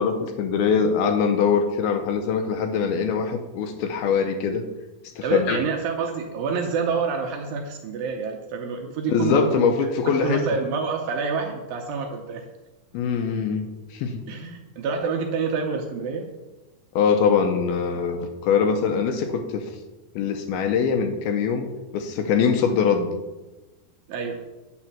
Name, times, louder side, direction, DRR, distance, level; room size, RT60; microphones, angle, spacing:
voice 1, 0.0-4.6 5.2-5.6 9.1-10.4 12.9-14.2 17.0-19.7 20.2-21.7 21.9-23.2, left 6 dB, 80° left, 6 dB, 2.4 m, -23 dB
voice 2, 5.2-9.6 10.2-12.5 14.3-16.3 24.1-24.4, right 5 dB, 75° right, 3 dB, 2.2 m, -27 dB
9.1 x 4.3 x 7.3 m, 1.1 s
omnidirectional pair, 4.7 m